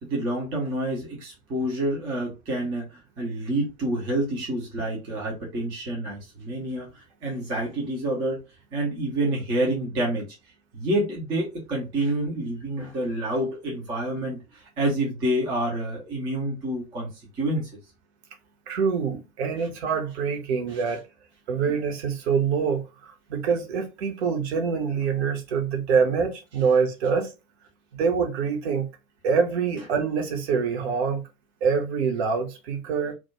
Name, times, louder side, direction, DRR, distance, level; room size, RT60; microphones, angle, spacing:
voice 1, 0.0-6.9 7.2-8.4 8.7-10.3 10.7-17.1 17.4-17.7 21.7-21.8, right 1 dB, 10° right, 0.3 m, -28 dB
voice 2, 18.7-21.0 21.5-27.3 27.9-28.9 29.2-31.2 31.6-33.1, right 6 dB, 50° right, 0.7 m, -25 dB
2.2 x 2.0 x 2.8 m
figure-of-eight pair, 90°, 42 cm